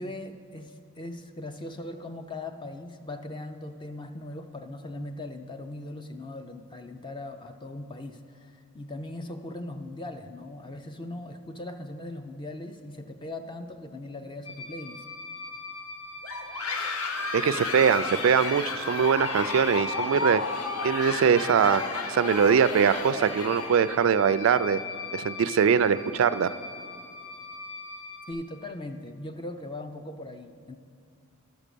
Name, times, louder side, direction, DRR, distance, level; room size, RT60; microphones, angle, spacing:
voice 1, 0.0-15.0 28.3-30.8, left 2 dB, 20° left, 7 dB, 0.4 m, -39 dB
sound 1, 14.4-28.3, left 3 dB, 55° left, 2.3 m, -41 dB
sound 2, 16.2-24.1, left 4 dB, 85° left, 0.8 m, -32 dB
voice 2, 17.3-20.4 20.8-21.8 22.1-24.8 25.1-26.5, right 7 dB, 65° right, 15 dB, 0.3 m, -22 dB
12.0 x 6.1 x 6.8 m, 2.2 s
head